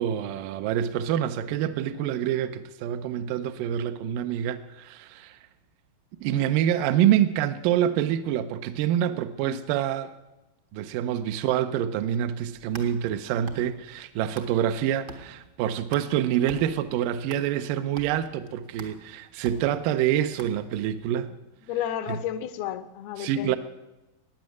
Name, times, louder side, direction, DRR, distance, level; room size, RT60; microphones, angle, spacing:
voice 1, 0.0-5.4 6.2-10.1 10.7-21.3 22.1-22.2 23.2-23.6, right 10 dB, 75° right, 2.1 m, -26 dB
sound 1, 12.4-14.8 15.1-21.0, right 2 dB, 60° right, 1.1 m, -45 dB
voice 2, 21.7-23.6, left 10 dB, 80° left, 2.6 m, -32 dB
15.0 x 9.6 x 9.3 m
omnidirectional pair, 4.5 m